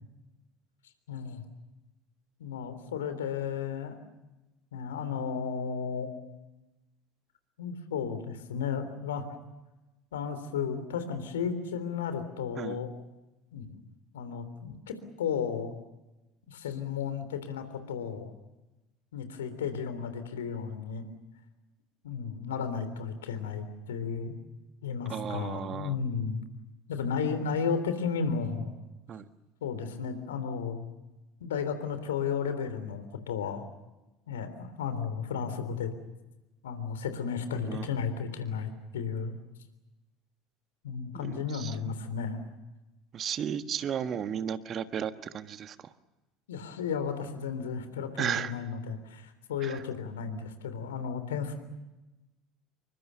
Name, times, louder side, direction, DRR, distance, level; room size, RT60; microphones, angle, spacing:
voice 1, 1.1-1.4 2.4-4.0 4.7-6.1 7.6-9.3 10.1-12.9 13.5-13.8 14.1-15.7 16.5-18.3 19.1-21.1 22.0-24.4 24.8-26.4 26.9-28.7 29.6-30.8 31.4-33.6 34.3-35.9 36.6-39.4 40.8-42.5 46.5-51.6, left 6 dB, 70° left, 10 dB, 3.5 m, -33 dB
voice 2, 25.1-26.0 29.1-29.3 37.6-37.9 41.1-41.8 43.1-45.9 48.2-48.5 49.6-49.8, right 8 dB, 40° right, 11 dB, 1.5 m, -34 dB
28.0 x 24.0 x 6.9 m, 1.0 s
figure-of-eight pair, 65°, 0 cm